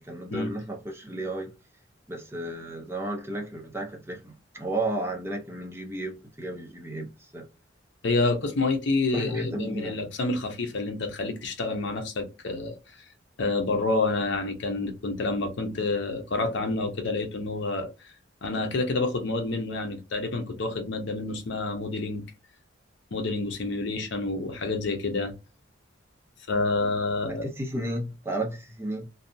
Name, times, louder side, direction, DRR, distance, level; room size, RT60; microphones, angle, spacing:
voice 1, 0.0-1.5 2.1-7.5 9.1-9.9 27.3-29.1, right 1 dB, 15° right, 0.5 m, -33 dB
voice 2, 8.0-12.7 13.4-17.9 18.4-22.2 23.1-25.3 26.5-27.5, left 3 dB, 65° left, 0.6 m, -28 dB
2.7 x 2.2 x 2.6 m
head